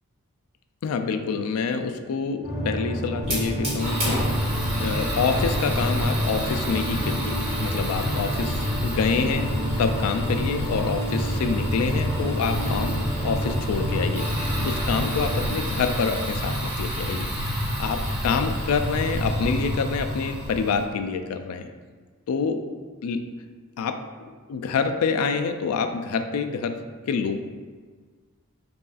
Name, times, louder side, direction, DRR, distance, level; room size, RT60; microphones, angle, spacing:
voice 1, 0.8-4.2 4.8-21.7 22.3-22.6 23.0-23.2 23.8-26.8 27.1-27.4, left 5 dB, 75° left, 7 dB, 0.3 m, -27 dB
sound 1, 2.4-15.6, equal, ahead, 1.1 m, -30 dB
Fire, 3.2-20.8, equal, 25° right, 1.1 m, -28 dB
5.3 x 2.4 x 2.4 m, 1.5 s
head